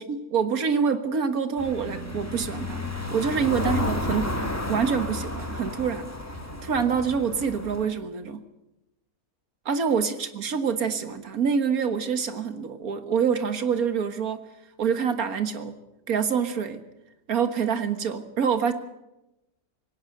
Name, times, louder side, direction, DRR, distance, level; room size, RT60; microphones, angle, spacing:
voice 1, 0.3-2.9 3.1-4.4 4.7-6.1 6.6-8.4 9.7-14.4 14.8-15.8 16.1-16.8 17.3-18.7, right 6 dB, 75° right, 9 dB, 2.0 m, -26 dB
sound 1, 1.6-7.8, left 2 dB, 10° left, 2.2 m, -32 dB
19.5 x 17.5 x 7.9 m, 0.94 s
omnidirectional pair, 1.5 m